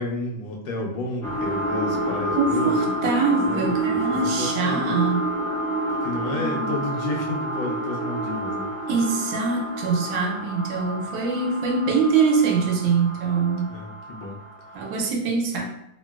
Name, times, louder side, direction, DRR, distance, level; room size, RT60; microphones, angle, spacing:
voice 1, 0.0-2.8 3.4-4.9 5.9-8.7 13.7-14.4, left 1 dB, 75° left, 0 dB, 1.2 m, -31 dB
sound 1, 1.2-14.4 14.9-15.0, right 1 dB, 25° left, 0.4 m, -28 dB
voice 2, 2.4-5.3 6.3-6.7 8.9-13.8 14.7-15.6, right 4 dB, 80° right, 1 dB, 1.3 m, -23 dB
3.0 x 2.9 x 2.2 m, 0.81 s
omnidirectional pair, 2.1 m